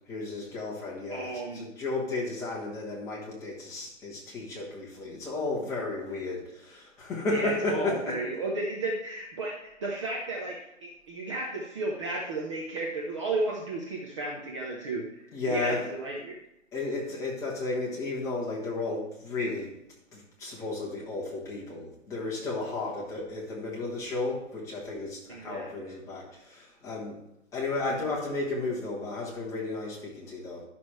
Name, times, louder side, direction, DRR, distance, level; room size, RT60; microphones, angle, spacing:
voice 1, 0.1-8.2 15.3-15.9 16.7-19.7 20.1-27.2 27.5-30.6, left 3 dB, 10° left, -5 dB, 1.2 m, -33 dB
voice 2, 1.1-1.6 7.3-16.3 25.3-25.9 27.8-27.9, right 2 dB, 25° right, -1 dB, 0.8 m, -33 dB
11.0 x 6.1 x 3.2 m, 0.83 s
hypercardioid pair, 160°, 39 cm